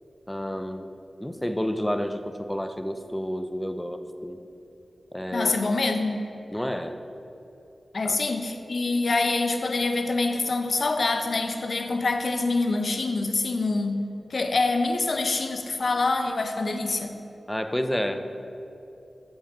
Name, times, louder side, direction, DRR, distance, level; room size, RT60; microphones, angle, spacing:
voice 1, 0.3-0.9 1.2-4.4 5.1-5.5 6.5-7.0 8.0-8.2 17.5-18.5, equal, 10° left, 9 dB, 0.4 m, -30 dB
voice 2, 5.3-6.3 7.9-14.0 14.3-17.1, left 3 dB, 60° left, 6 dB, 0.5 m, -25 dB
7.1 x 5.3 x 5.1 m, 2.9 s
wide cardioid pair, 85°, 0 cm